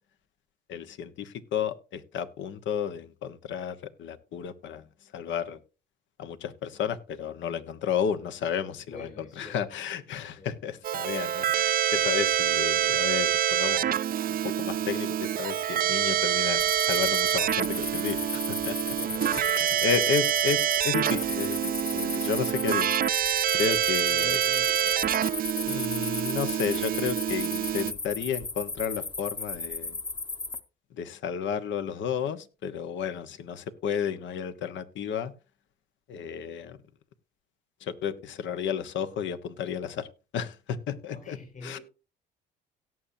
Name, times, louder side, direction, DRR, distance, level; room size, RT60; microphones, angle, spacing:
voice 1, 0.7-4.8 5.1-5.6 6.2-13.9 14.3-19.0 19.3-22.9 23.5-24.4 25.6-30.0 30.9-35.3 36.1-36.8 37.8-40.1 40.3-41.4 41.6-41.8, left 7 dB, 65° left, 11 dB, 1.2 m, -32 dB
voice 2, 8.9-9.7 10.4-10.5 19.0-20.0 23.6-23.8 24.1-26.2 41.1-41.8, left 2 dB, 40° left, -2 dB, 6.8 m, -45 dB
Keyboard (musical), 10.8-27.9, right 10 dB, 45° right, 0.5 m, -26 dB
sound 1, 16.6-30.6, left 3 dB, 20° left, 1.1 m, -36 dB
17.5 x 7.3 x 2.7 m, 0.32 s
supercardioid pair, 70°, 21 cm